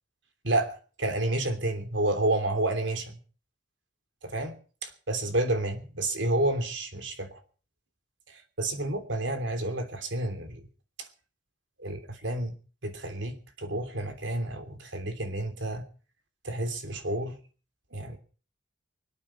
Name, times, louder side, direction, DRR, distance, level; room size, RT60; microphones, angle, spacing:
voice 1, 1.0-3.2 4.3-4.5 4.8-7.4 8.3-10.6 11.8-12.5 12.8-15.8 16.4-17.4 17.9-18.2, right 1 dB, 80° right, 7 dB, 3.1 m, -30 dB
24.5 x 8.8 x 5.6 m, 0.40 s
head